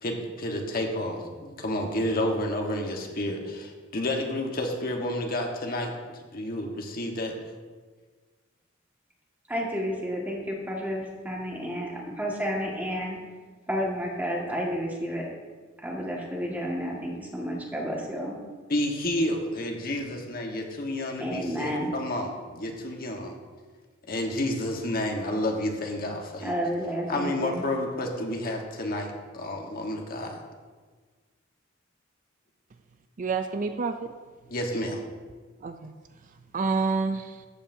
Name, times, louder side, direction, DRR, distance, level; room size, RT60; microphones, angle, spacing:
voice 1, 0.0-7.3 18.7-23.3 24.1-26.5 27.1-30.4 34.5-35.0, left 1 dB, 50° left, 1 dB, 1.3 m, -30 dB
voice 2, 9.5-13.2 13.7-15.3 15.8-18.4 21.2-21.9 26.4-27.7, equal, 10° right, -2 dB, 1.7 m, -31 dB
voice 3, 33.2-34.1 35.6-36.0 36.5-37.5, right 4 dB, 40° right, 8 dB, 0.4 m, -28 dB
14.5 x 8.2 x 2.7 m, 1.4 s
head